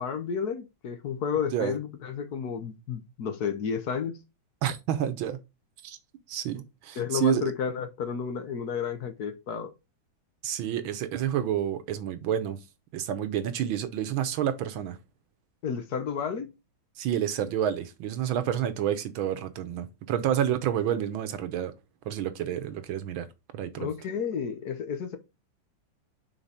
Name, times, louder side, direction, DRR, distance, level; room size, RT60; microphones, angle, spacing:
voice 1, 0.0-4.2 7.0-9.7 15.6-16.5 23.8-25.2, left 7 dB, 60° left, 1.3 m, -31 dB
voice 2, 4.6-5.4 5.8-6.0 6.3-7.5 10.4-12.6 12.9-15.0 17.0-21.7 22.1-23.3 23.5-23.9, right 10 dB, 85° right, 1.7 m, -29 dB
5.8 x 4.0 x 5.1 m
omnidirectional pair, 2.2 m